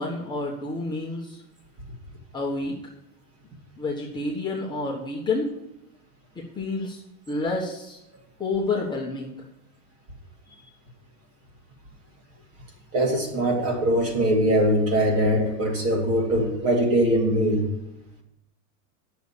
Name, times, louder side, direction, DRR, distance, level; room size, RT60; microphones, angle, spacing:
voice 1, 0.0-1.4 2.3-2.8 3.8-5.5 6.3-8.0 8.4-9.4, left 3 dB, 10° left, -5 dB, 1.5 m, -29 dB
voice 2, 12.9-17.7, right 1 dB, 30° right, 1 dB, 2.5 m, -22 dB
9.2 x 6.9 x 8.4 m, 0.88 s
supercardioid pair, 140°, 45 cm